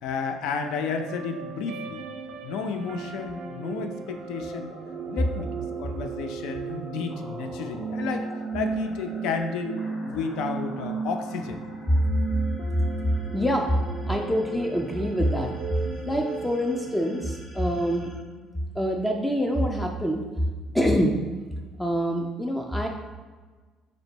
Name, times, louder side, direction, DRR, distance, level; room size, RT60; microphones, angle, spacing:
voice 1, 0.0-2.0 2.4-4.8 5.1-5.5 5.8-8.3 8.5-11.6 17.7-17.8, left 5 dB, 80° left, 6 dB, 0.4 m, -32 dB
sound 1, 0.6-17.3, right 5 dB, 75° right, 0.3 m, -36 dB
sound 2, 4.0-19.2, left 1 dB, 20° left, 0.8 m, -47 dB
voice 2, 13.3-13.7 14.0-15.5 16.1-18.1 18.8-20.2 20.7-21.2 21.8-22.9, equal, 5° left, 1 dB, 0.3 m, -25 dB
3.9 x 2.1 x 4.3 m, 1.4 s
cardioid pair, 110°, 0 cm